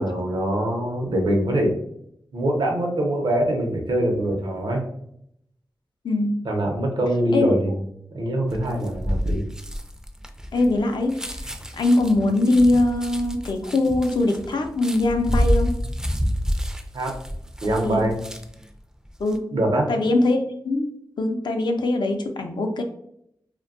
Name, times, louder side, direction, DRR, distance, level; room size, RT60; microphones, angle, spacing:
voice 1, 0.0-1.7 2.3-4.8 6.4-7.8 8.1-9.4 16.9-17.1 17.6-18.2 19.5-19.9, right 1 dB, 80° right, 1 dB, 0.6 m, -23 dB
voice 2, 6.0-6.5 7.3-7.5 10.5-11.5 11.7-15.8 17.8-18.1 19.2-19.6 19.9-22.8, left 2 dB, 75° left, 5 dB, 0.4 m, -22 dB
sound 1, 8.5-18.7 19.1-19.4, equal, 10° right, 0.3 m, -28 dB
2.5 x 2.2 x 2.4 m, 0.73 s
cardioid pair, 55°, 8 cm